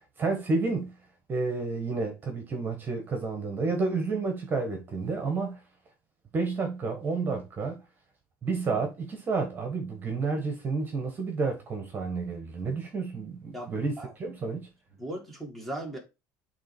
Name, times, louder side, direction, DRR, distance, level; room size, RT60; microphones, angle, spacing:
voice 1, 0.2-0.9 1.3-5.6 6.3-7.8 8.4-13.9 14.2-14.7, right 4 dB, 25° right, 1.4 m, -30 dB
voice 2, 13.5-14.1 15.0-16.0, right 1 dB, ahead, 1.7 m, -38 dB
7.4 x 3.1 x 4.5 m
cardioid pair, 140°, 8 cm